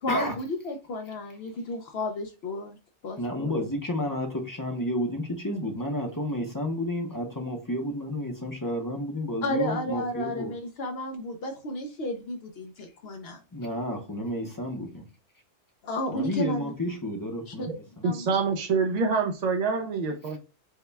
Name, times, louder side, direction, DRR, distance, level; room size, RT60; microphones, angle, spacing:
voice 1, 0.0-2.8 3.0-3.6 9.4-13.4 15.8-16.7 17.5-17.7 18.0-18.3, left 1 dB, 65° left, 3 dB, 0.8 m, -32 dB
voice 2, 3.2-10.5 13.5-15.0 16.1-17.6 18.0-18.1, equal, 20° left, 3 dB, 0.6 m, -31 dB
voice 3, 18.0-20.4, right 4 dB, 45° right, 3 dB, 0.6 m, -26 dB
4.7 x 2.2 x 3.3 m, 0.32 s
omnidirectional pair, 1.2 m